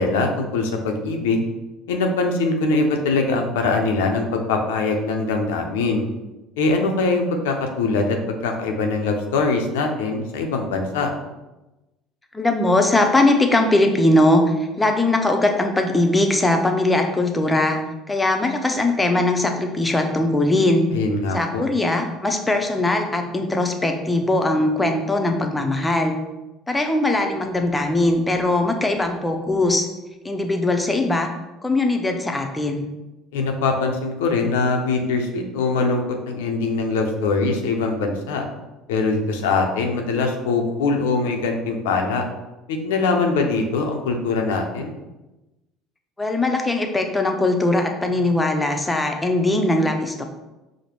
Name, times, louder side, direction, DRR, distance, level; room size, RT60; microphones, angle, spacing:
voice 1, 0.0-1.4 1.9-6.0 6.6-11.1 20.9-21.6 33.3-38.5 38.9-42.2 42.7-44.9, left 3 dB, 80° left, 3 dB, 0.5 m, -22 dB
voice 2, 12.3-14.4 14.8-17.8 18.1-20.9 21.3-26.2 26.7-29.9 30.2-31.3 31.6-32.9 46.2-50.2, left 2 dB, 15° left, 4 dB, 0.6 m, -20 dB
4.9 x 2.1 x 3.0 m, 1.0 s
hypercardioid pair, 70°, 0 cm